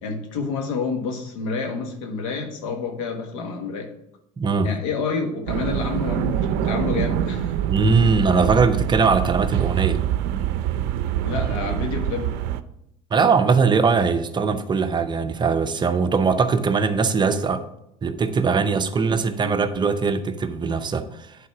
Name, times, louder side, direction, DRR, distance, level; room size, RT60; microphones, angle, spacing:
voice 1, 0.0-3.9 4.6-7.6 11.2-12.3, left 4 dB, 85° left, 1.5 m, -28 dB
voice 2, 4.4-4.7 7.6-10.0 13.1-17.6 18.0-21.4, right 4 dB, 25° right, 0.7 m, -21 dB
sound 1, 5.5-12.6, right 11 dB, 70° right, 0.5 m, -25 dB
8.5 x 4.1 x 5.7 m
supercardioid pair, 90°, 17 cm